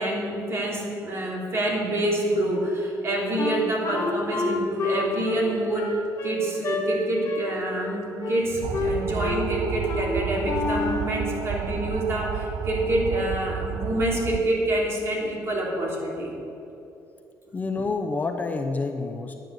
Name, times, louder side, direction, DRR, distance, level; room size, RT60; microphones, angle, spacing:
voice 1, 0.0-6.0 6.2-16.4, right 1 dB, 35° right, -2 dB, 3.0 m, -27 dB
Wind instrument woodwind instrument, 3.4-6.9 7.2-7.5 7.8-8.5 8.7-9.5 9.9-10.1 10.4-11.1, left 4 dB, 40° left, 1.6 m, -29 dB
sound 1, 8.6-14.4, right 8 dB, 55° right, 0.5 m, -31 dB
voice 2, 17.5-19.4, left 3 dB, 25° left, 5 dB, 0.7 m, -28 dB
11.0 x 9.1 x 7.9 m, 2.9 s
cardioid pair, 150°, 7 cm